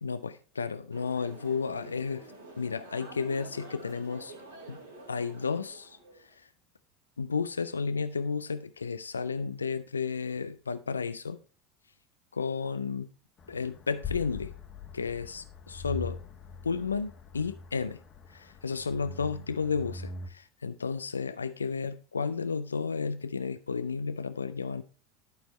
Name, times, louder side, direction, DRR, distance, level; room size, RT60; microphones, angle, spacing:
voice 1, 0.0-2.3 2.6-4.3 4.7-4.8 5.1-6.5 7.2-11.4 12.3-13.1 13.5-14.5 14.9-16.2 16.6-18.0 18.3-24.8, left 5 dB, 90° left, 12 dB, 0.4 m, -32 dB
sound 1, 0.9-6.3, right 2 dB, 80° right, 2.0 m, -48 dB
sound 2, 13.4-20.3, left 4 dB, 40° left, 1.4 m, -42 dB
11.5 x 4.4 x 4.2 m, 0.36 s
hypercardioid pair, 75°, 0 cm